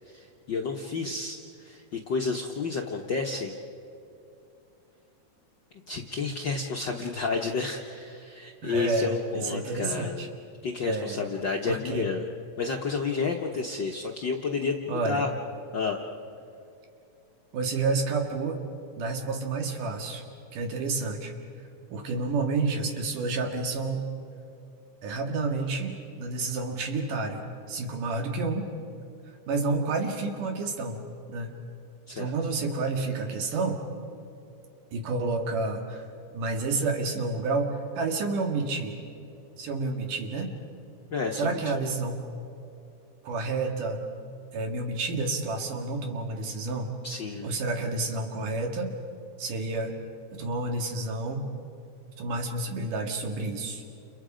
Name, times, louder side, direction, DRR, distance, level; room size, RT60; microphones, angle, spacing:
voice 1, 0.1-3.6 5.9-10.3 10.6-12.2 12.6-15.3 15.7-16.0 32.1-32.3 41.1-41.6 47.0-47.5, left 4 dB, 65° left, 0 dB, 1.1 m, -31 dB
voice 2, 8.6-9.2 9.4-10.3 10.8-11.2 11.7-12.1 14.9-15.2 17.5-18.6 19.0-20.2 20.5-21.3 21.9-24.1 25.0-28.7 29.5-31.0 31.3-31.6 32.2-33.8 34.9-36.0 36.3-39.0 39.6-40.5 41.3-42.2 43.2-44.0 44.5-46.9 47.4-48.9 49.4-49.9 50.3-51.5 52.2-53.8, right 3 dB, 90° right, 3 dB, 3.7 m, -29 dB
29.5 x 29.5 x 5.1 m, 2.7 s
omnidirectional pair, 3.6 m